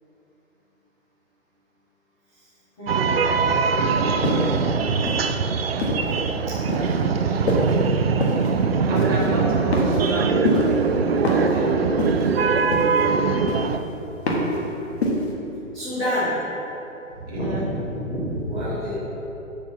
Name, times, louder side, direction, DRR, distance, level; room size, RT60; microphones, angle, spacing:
voice 1, 2.8-4.0 6.5-6.9 15.7-16.4 17.2-18.9, equal, 5° left, -15 dB, 0.6 m, -29 dB
sound 1, 2.9-13.8, right 5 dB, 50° right, 0.5 m, -22 dB
sound 2, 4.2-4.6 5.1-6.1 6.7-7.0 7.5-7.8 8.2-8.5 8.9-9.3 9.7-10.2 10.4-10.8 11.2-11.6 12.0-12.4 12.7-13.1 13.5-13.8 14.3-14.6 15.0-15.3, left 1 dB, 50° left, 1.6 m, -25 dB
voice 2, 8.9-11.8 17.3-17.7, equal, 15° right, -5 dB, 1.1 m, -29 dB
7.0 x 6.5 x 5.6 m, 3.0 s
hypercardioid pair, 165°, 40 cm